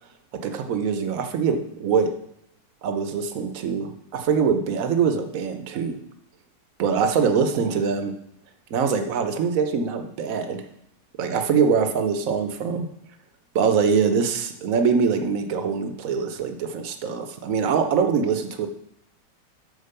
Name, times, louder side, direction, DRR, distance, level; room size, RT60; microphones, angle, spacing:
voice 1, 0.4-2.1 2.8-6.0 6.8-8.1 8.7-10.6 11.2-12.9 13.5-18.7, right 6 dB, 55° right, 7 dB, 1.3 m, -23 dB
10.5 x 4.5 x 6.8 m, 0.77 s
omnidirectional pair, 2.0 m